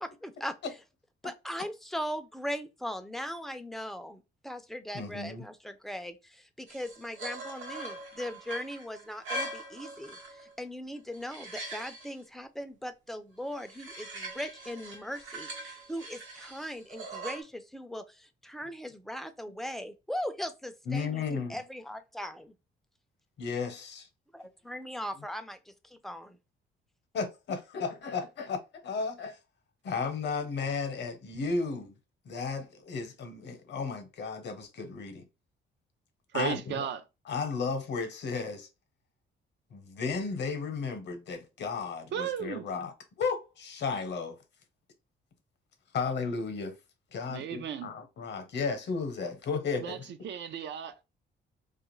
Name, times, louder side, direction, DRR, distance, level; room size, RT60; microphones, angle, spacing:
voice 1, 0.0-0.6 1.2-22.5 24.3-26.4, equal, ahead, 0.4 m, -39 dB
voice 2, 4.9-5.5 20.9-21.6 23.4-24.1 27.1-29.4 29.8-31.9 32.3-35.2 36.3-36.9 37.3-38.7 39.7-42.9 43.2-44.4 45.9-46.7 47.1-50.1, left 4 dB, 60° left, 0.8 m, -34 dB
sound 1, 6.7-10.5 11.0-12.1 13.5-17.4, right 1 dB, 80° right, 1.0 m, -42 dB
voice 3, 36.3-37.0 42.1-42.7 47.3-47.9 49.8-50.0 50.2-51.0, right 9 dB, 65° right, 0.5 m, -35 dB
2.5 x 2.4 x 3.0 m
cardioid pair, 90°, 20 cm